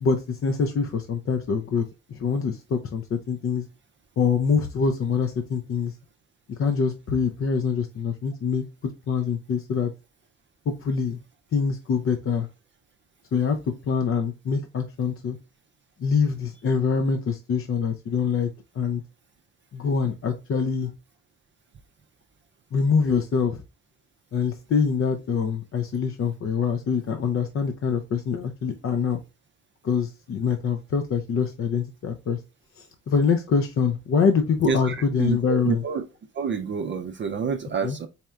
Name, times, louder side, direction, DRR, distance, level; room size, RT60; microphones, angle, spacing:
voice 1, 0.0-3.7 4.2-5.9 6.5-9.9 10.7-11.2 11.5-12.5 13.3-13.6 13.9-15.4 16.0-18.5 18.7-19.0 19.7-20.9 22.7-23.6 24.3-29.2 29.8-32.4 32.8-35.8 37.8-38.0, left 5 dB, 45° left, 0.5 m, -25 dB
voice 2, 34.7-36.0 36.3-38.1, right 5 dB, 40° right, 0.5 m, -28 dB
4.2 x 3.2 x 2.3 m
cardioid pair, 90°, 30 cm